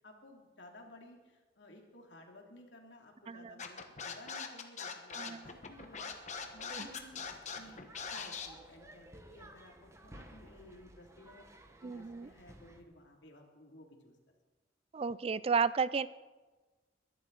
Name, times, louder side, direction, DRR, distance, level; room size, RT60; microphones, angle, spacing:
voice 1, 0.0-6.1 6.5-9.7 10.0-14.2, left 1 dB, 80° left, 1 dB, 2.7 m, -56 dB
Scratching (performance technique), 3.6-8.5, left 6 dB, 40° left, 1.2 m, -41 dB
voice 2, 5.1-5.5 6.7-6.9 11.8-12.3 14.9-16.1, right 5 dB, 35° right, 17 dB, 0.3 m, -33 dB
sound 1, 5.4-12.8, right 1 dB, 15° right, 1.1 m, -56 dB
22.0 x 11.5 x 3.9 m, 1.3 s
head